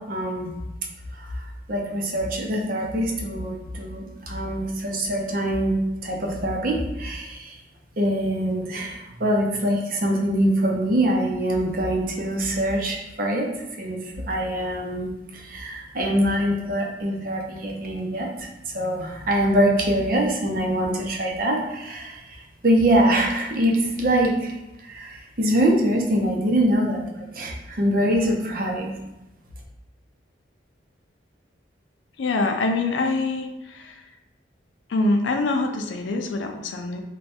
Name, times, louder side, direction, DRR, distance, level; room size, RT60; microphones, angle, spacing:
voice 1, 0.1-0.5 1.2-5.7 6.0-7.6 8.0-13.5 13.8-27.0 27.3-28.9, right 1 dB, 50° right, 0 dB, 0.6 m, -24 dB
voice 2, 32.2-34.1 34.9-37.0, left 2 dB, 80° left, 5 dB, 0.5 m, -25 dB
3.4 x 2.2 x 4.2 m, 0.92 s
head